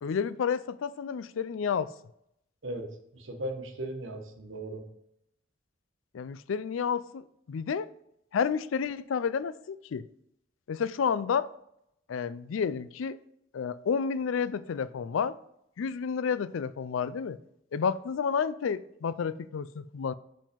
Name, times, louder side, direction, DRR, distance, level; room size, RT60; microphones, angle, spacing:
voice 1, 0.0-1.9 6.1-7.9 8.3-10.1 10.7-11.5 12.1-13.2 13.5-15.4 15.8-17.4 17.7-20.1, left 6 dB, 80° left, 0.4 m, -30 dB
voice 2, 2.6-4.9, right 1 dB, 75° right, 1.2 m, -37 dB
5.4 x 5.3 x 5.1 m
head